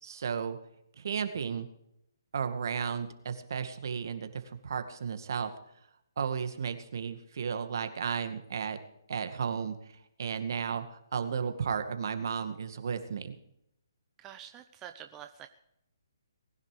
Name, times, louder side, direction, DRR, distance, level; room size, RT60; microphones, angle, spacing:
voice 1, 0.0-0.6 1.0-1.7 2.3-5.5 6.2-8.8 9.1-9.8 10.2-13.3, right 6 dB, 60° right, 9 dB, 2.1 m, -34 dB
voice 2, 14.2-15.5, right 10 dB, 20° right, 7 dB, 0.7 m, -47 dB
20.0 x 10.5 x 5.1 m, 0.78 s
hypercardioid pair, 150°, 2 cm